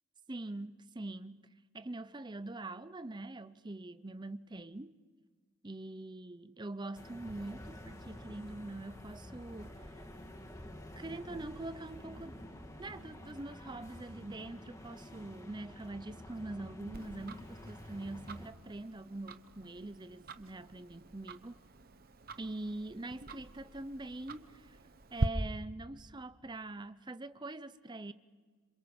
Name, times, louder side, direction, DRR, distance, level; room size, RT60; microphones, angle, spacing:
voice 1, 0.3-1.5 1.7-5.0 5.6-9.9 11.0-12.4 12.8-21.6 22.4-24.8 25.1-28.1, right 2 dB, 20° right, 0.7 m, -44 dB
sound 1, 6.9-18.5, left 1 dB, 15° left, 1.8 m, -49 dB
Tick-tock, 16.9-25.3, right 2 dB, 45° right, 0.9 m, -43 dB
27.0 x 27.0 x 5.4 m
head